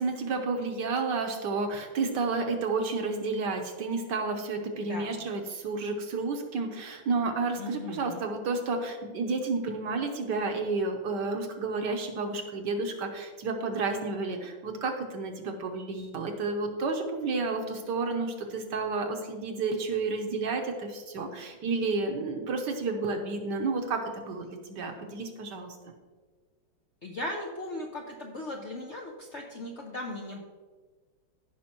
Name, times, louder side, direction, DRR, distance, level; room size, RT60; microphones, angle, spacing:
voice 1, 0.0-25.8, right 3 dB, 65° right, 4 dB, 1.4 m, -31 dB
voice 2, 4.8-5.2 7.6-8.2 27.0-30.4, left 1 dB, 60° left, 0 dB, 0.7 m, -38 dB
15.0 x 5.5 x 3.0 m, 1.4 s
omnidirectional pair, 2.2 m